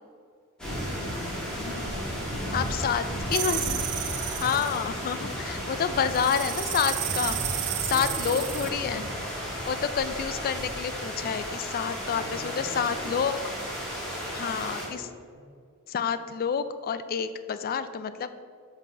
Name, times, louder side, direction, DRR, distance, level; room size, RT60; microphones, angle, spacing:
sound 1, 0.6-7.2, left 1 dB, 80° left, 1.1 m, -45 dB
sound 2, 0.6-14.9, equal, 5° left, 1.8 m, -34 dB
voice 1, 1.4-3.1 5.6-6.7 7.8-9.2 10.2-10.4 12.0-13.3 14.4-15.5, equal, 35° right, -3 dB, 1.4 m, -45 dB
voice 2, 2.5-3.0 3.3-3.9 4.3-9.1 9.4-13.4 14.3-15.1 15.9-18.3, left 7 dB, 45° left, 12 dB, 0.3 m, -29 dB
sound 3, 3.3-4.8 6.1-8.7, right 14 dB, 90° right, 0.4 m, -32 dB
5.6 x 4.0 x 6.0 m, 2.1 s
head